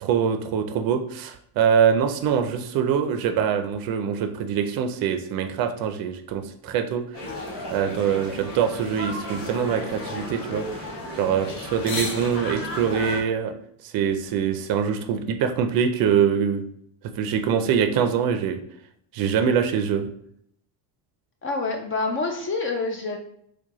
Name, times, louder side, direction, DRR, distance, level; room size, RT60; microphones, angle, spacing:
voice 1, 0.0-7.1 7.7-13.5 13.8-16.6 17.0-18.6 19.1-20.1, right 7 dB, 50° right, 7 dB, 0.5 m, -24 dB
sound 1, 7.1-13.2, left 1 dB, 55° left, 1.4 m, -33 dB
voice 2, 21.4-23.2, left 3 dB, 30° left, 3 dB, 0.3 m, -27 dB
4.5 x 2.3 x 2.9 m, 0.70 s
cardioid pair, 120°, 47 cm